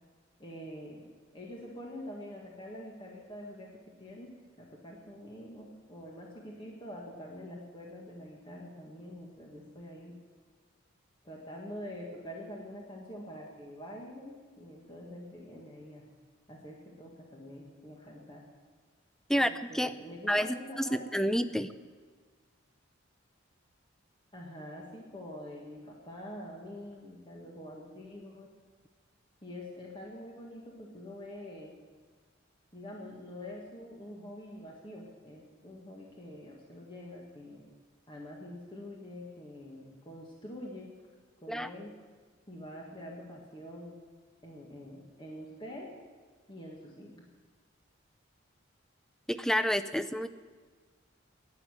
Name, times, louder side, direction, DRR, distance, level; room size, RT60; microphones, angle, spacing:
voice 1, 0.4-1.0 1.3-3.7 4.0-10.1 11.2-16.1 16.5-18.4 19.3-21.3 24.3-28.5 29.4-31.7 32.7-37.6 38.1-40.9 41.4-41.9 42.5-44.0 44.4-45.9 46.5-47.2, left 1 dB, 25° left, -2 dB, 1.8 m, -45 dB
voice 2, 19.3-19.9 20.3-21.7 41.5-41.7 49.3-50.3, equal, ahead, 11 dB, 0.5 m, -29 dB
11.5 x 9.8 x 9.8 m, 1.5 s
head